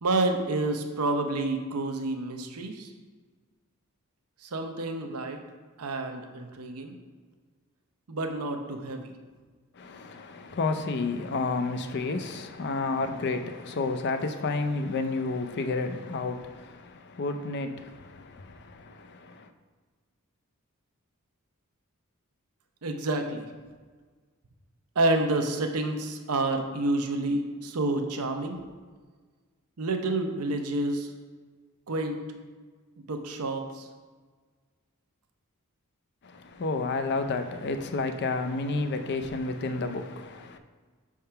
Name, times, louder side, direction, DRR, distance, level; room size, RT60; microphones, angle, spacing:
voice 1, 0.0-2.9 4.4-5.4 5.8-6.9 8.1-9.1 22.8-23.5 25.0-28.6 29.8-31.1 31.9-32.2 33.1-33.9, right 2 dB, 90° right, 0.7 m, -29 dB
voice 2, 9.7-19.5 36.2-40.6, left 3 dB, 50° left, 0.5 m, -31 dB
5.5 x 3.6 x 5.7 m
head